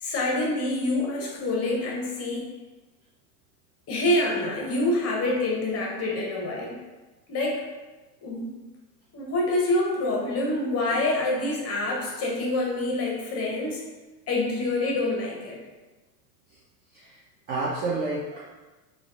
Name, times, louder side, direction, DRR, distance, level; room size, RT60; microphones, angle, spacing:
voice 1, 0.0-2.5 3.9-6.8 7.3-7.6 8.2-8.5 9.1-13.8 14.3-15.6, left 2 dB, 30° left, -2 dB, 1.0 m, -26 dB
voice 2, 17.5-18.5, right 3 dB, 25° right, -5 dB, 0.4 m, -30 dB
3.3 x 2.4 x 3.6 m, 1.2 s
hypercardioid pair, 95°, 49 cm